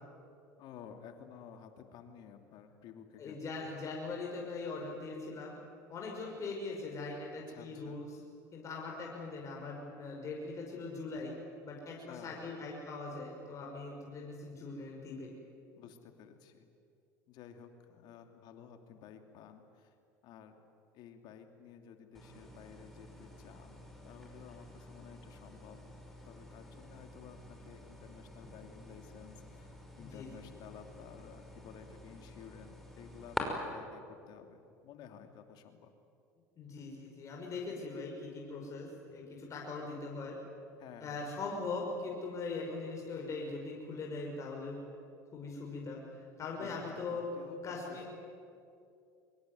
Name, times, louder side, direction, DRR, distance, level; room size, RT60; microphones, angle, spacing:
voice 1, 0.6-3.7 7.5-8.0 12.0-12.5 15.8-16.7 17.3-19.9 20.2-20.5 20.9-25.8 26.2-29.7 30.0-35.9 40.8-41.3 46.6-48.1, left 8 dB, 60° left, 6 dB, 2.8 m, -53 dB
voice 2, 3.2-5.6 5.9-8.1 8.5-11.4 11.6-15.3 30.0-30.5 36.6-40.4 41.0-44.8 45.3-47.2 47.6-48.0, left 3 dB, 40° left, -1 dB, 5.7 m, -41 dB
sound 1, 22.1-33.4, left 1 dB, 5° left, 5.9 m, -48 dB
24.0 x 22.5 x 9.4 m, 2.5 s
hypercardioid pair, 85°, 8 cm